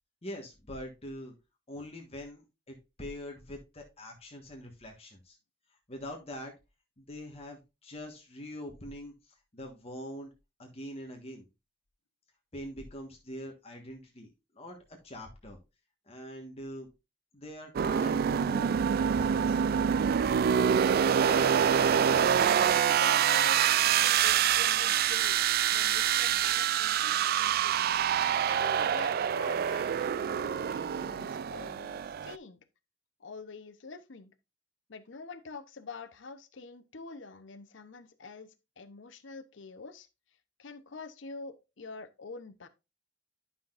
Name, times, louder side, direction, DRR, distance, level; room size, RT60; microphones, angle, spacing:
voice 1, 0.2-1.3 1.7-5.4 5.9-6.5 7.0-10.3 10.6-11.4 12.5-14.3 14.5-15.6 16.1-16.9 17.3-18.8 19.2-19.6, left 1 dB, 35° left, 1.4 m, -43 dB
sound 1, 17.8-32.4, right 8 dB, 50° right, 0.3 m, -26 dB
voice 2, 21.0-25.4 25.7-27.8 28.5-32.6 33.2-34.3 34.9-40.1 40.6-42.7, left 4 dB, 75° left, 0.8 m, -46 dB
11.5 x 5.8 x 2.5 m
head